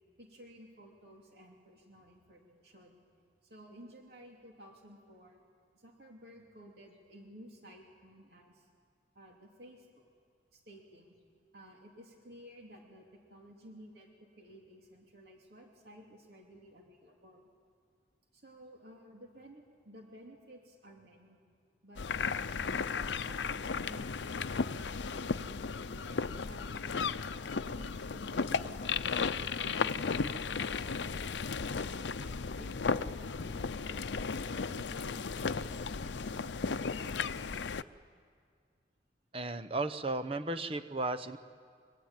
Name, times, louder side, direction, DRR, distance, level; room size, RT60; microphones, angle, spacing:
voice 1, 0.2-3.0 3.4-5.4 5.7-8.7 9.1-10.0 10.5-11.1 11.5-17.5 18.3-21.4 21.8-22.1 22.6-25.5 25.7-27.2 27.7-31.1 31.7-34.1 34.4-36.5, equal, 65° right, 0 dB, 2.9 m, -55 dB
sound 1, 22.0-37.8, left 5 dB, 90° left, 0.6 m, -35 dB
voice 2, 39.3-41.4, right 2 dB, 30° right, 9 dB, 0.9 m, -35 dB
25.5 x 24.0 x 9.0 m, 2.1 s
head